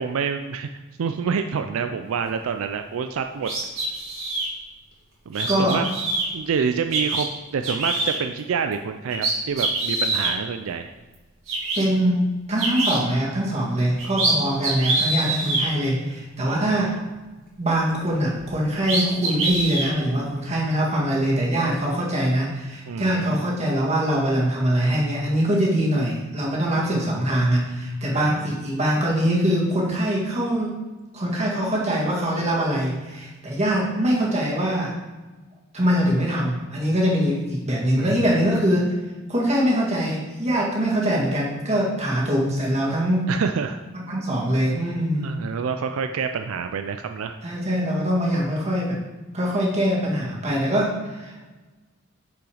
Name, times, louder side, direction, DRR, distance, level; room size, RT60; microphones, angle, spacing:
voice 1, 0.0-3.5 5.3-5.9 6.3-10.9 14.2-14.9 15.7-15.8 16.4-16.9 22.9-23.4 26.7-26.9 28.0-28.6 37.9-38.4 43.3-43.8 45.2-47.4, right 6 dB, 90° right, 7 dB, 0.4 m, -28 dB
sound 1, 3.4-4.5 5.3-6.3 6.9-7.2 7.6-8.2 8.7-8.8 9.1-10.3 11.1-11.2 11.5-11.8 12.6-13.0 13.8-14.3 14.6-15.7 18.4-18.5 18.8-19.9, right 2 dB, 70° right, 2.5 m, -25 dB
voice 2, 5.5-5.8 11.7-16.9 17.6-30.8 31.1-34.9 35.7-38.9 39.3-43.3 43.9-45.3 47.4-49.0 49.3-51.4, equal, 30° right, -4 dB, 1.8 m, -23 dB
6.2 x 6.0 x 4.9 m, 1.2 s
head